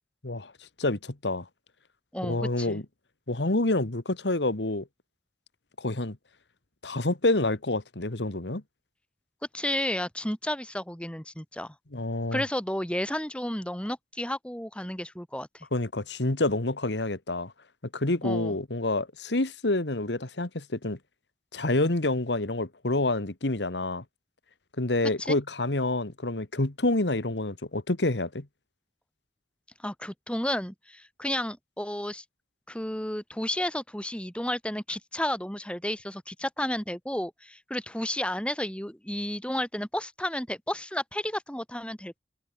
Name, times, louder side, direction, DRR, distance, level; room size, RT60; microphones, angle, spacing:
voice 1, 0.8-1.5 2.2-2.8 3.3-4.9 5.8-6.2 6.8-8.6 11.9-12.4 15.7-17.5 17.9-21.0 21.5-24.0 24.8-28.5, left 2 dB, 85° left, 1.8 m, -28 dB
voice 2, 2.1-2.8 9.5-11.7 12.3-15.7 18.2-18.6 25.2-25.4 29.8-32.2 32.7-42.2, left 1 dB, 5° left, 2.1 m, -32 dB
head